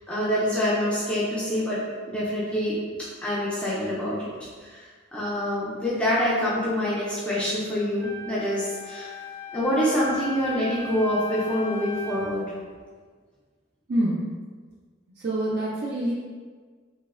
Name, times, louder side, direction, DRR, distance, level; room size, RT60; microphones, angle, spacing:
voice 1, 0.1-1.8 2.1-2.8 3.2-9.1 9.5-12.5, equal, 5° left, -9 dB, 0.4 m, -26 dB
Wind instrument woodwind instrument, 8.0-12.4, left 2 dB, 80° left, 1.2 m, -38 dB
voice 2, 13.9-14.2 15.2-16.1, right 1 dB, 55° right, -6 dB, 0.4 m, -25 dB
3.0 x 2.0 x 2.3 m, 1.5 s
head